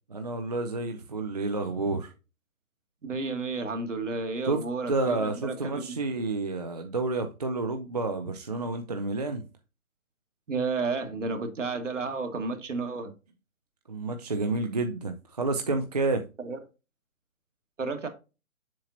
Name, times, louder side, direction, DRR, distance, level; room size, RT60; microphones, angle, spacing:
voice 1, 0.1-2.1 4.5-4.6 4.9-9.4 13.9-16.2, right 3 dB, 30° right, 0.5 m, -29 dB
voice 2, 3.0-6.3 10.5-13.1 16.4-16.6 17.8-18.1, right 4 dB, 60° right, 1.7 m, -32 dB
7.4 x 5.6 x 2.7 m
figure-of-eight pair, 135°, 42 cm